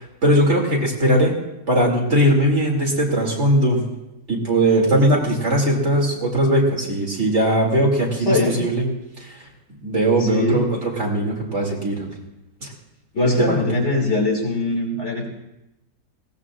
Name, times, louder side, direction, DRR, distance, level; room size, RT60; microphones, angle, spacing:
voice 1, 0.0-1.4 1.7-3.8 4.3-8.8 9.2-9.4 9.8-12.1 12.6-12.7 13.3-13.6, right 1 dB, 50° right, -1 dB, 3.0 m, -19 dB
voice 2, 8.2-8.6 10.2-10.6 13.1-15.3, left 2 dB, 50° left, 0 dB, 2.6 m, -21 dB
20.5 x 17.5 x 2.5 m, 0.93 s
omnidirectional pair, 1.6 m